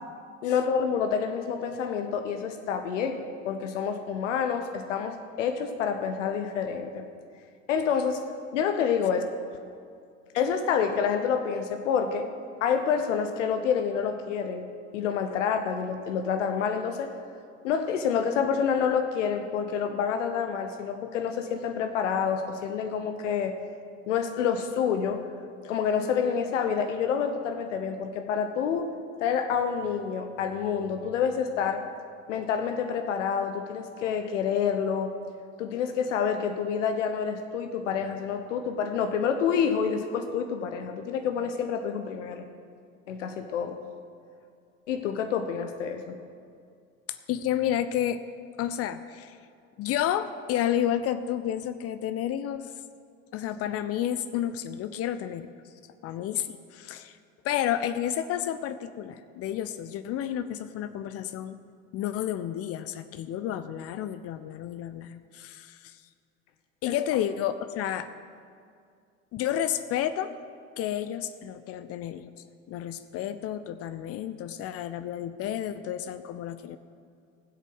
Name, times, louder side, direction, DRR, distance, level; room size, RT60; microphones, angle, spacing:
voice 1, 0.4-7.0 7.7-8.2 8.5-9.3 10.3-12.3 12.6-14.7 14.9-17.2 17.6-23.5 24.1-25.3 25.6-28.9 29.2-31.8 32.3-35.2 35.6-42.4 43.1-43.8 44.9-46.2 66.9-67.0, left 7 dB, 65° left, 7 dB, 0.9 m, -28 dB
voice 2, 47.3-48.2 48.6-49.4 49.8-52.7 53.3-55.5 56.0-57.2 57.4-61.6 61.9-66.0 66.8-68.1 69.3-70.3 70.8-72.3 72.7-76.8, left 11 dB, 40° left, 12 dB, 0.6 m, -31 dB
15.5 x 8.2 x 6.2 m, 2.3 s
figure-of-eight pair, 65°, 39 cm